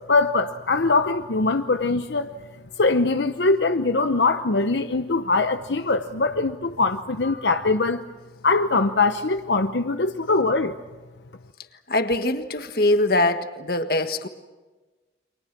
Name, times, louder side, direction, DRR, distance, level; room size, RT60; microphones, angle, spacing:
voice 1, 0.1-2.3 2.8-8.0 8.4-10.7, left 3 dB, 80° left, 8 dB, 0.9 m, -22 dB
voice 2, 11.9-14.3, left 1 dB, 55° left, 8 dB, 1.6 m, -22 dB
30.0 x 24.5 x 6.1 m, 1.2 s
head